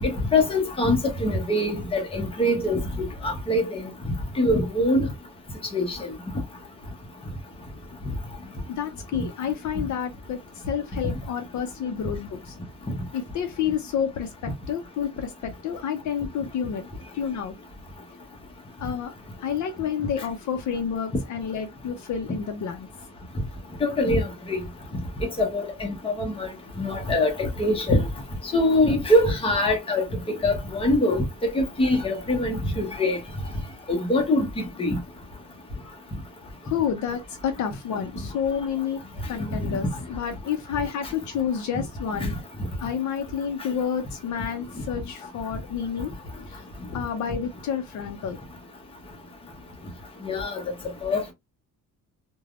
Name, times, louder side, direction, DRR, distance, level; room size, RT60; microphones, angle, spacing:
voice 1, 0.0-2.8 3.2-3.8 4.4-5.1 5.7-6.1 23.8-24.6 25.4-26.5 26.8-28.0 28.5-30.0 30.4-31.2 31.5-33.2 33.9-34.5 34.8-35.0 39.7-39.8 50.2-50.6 51.0-51.3, left 1 dB, 15° left, 0.7 m, -23 dB
voice 2, 8.7-12.5 13.1-16.8 17.1-17.6 18.8-19.1 19.4-22.9 36.6-39.0 39.3-42.3 42.8-46.1 46.5-46.6 46.9-48.4, left 8 dB, 55° left, 0.6 m, -29 dB
3.3 x 2.2 x 2.3 m
cardioid pair, 165°, 34 cm